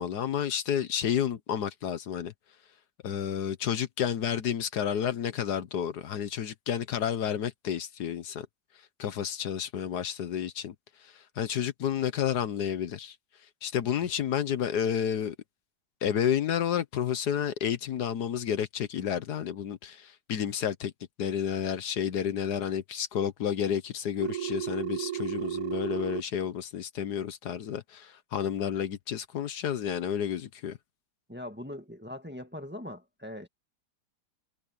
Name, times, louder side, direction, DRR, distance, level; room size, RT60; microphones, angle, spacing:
voice 1, 0.0-2.3 3.0-8.5 9.0-10.7 11.4-13.1 13.6-15.4 16.0-20.9 21.2-30.8, left 9 dB, 70° left, 1.5 m, -30 dB
Telephone, 24.2-26.2, right 12 dB, 70° right, 1.0 m, -33 dB
voice 2, 31.3-33.5, left 1 dB, 5° right, 1.6 m, -41 dB
omnidirectional pair, 1.8 m